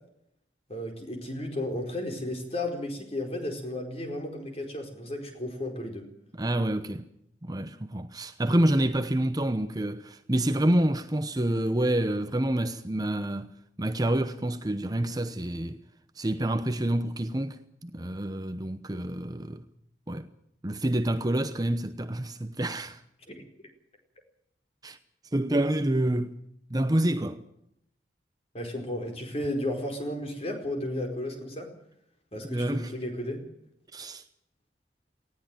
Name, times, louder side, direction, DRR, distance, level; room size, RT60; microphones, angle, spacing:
voice 1, 0.7-6.1 23.3-23.4 28.5-31.7 32.3-33.4, left 1 dB, 35° left, 4.7 m, -33 dB
voice 2, 6.4-7.0 7.4-13.5 13.8-15.8 16.2-19.6 20.1-20.3 20.6-23.0 24.8-25.0 25.3-26.4 26.7-27.4 32.4-32.9 33.9-34.2, right 1 dB, 20° right, 0.9 m, -27 dB
19.0 x 16.0 x 9.1 m
head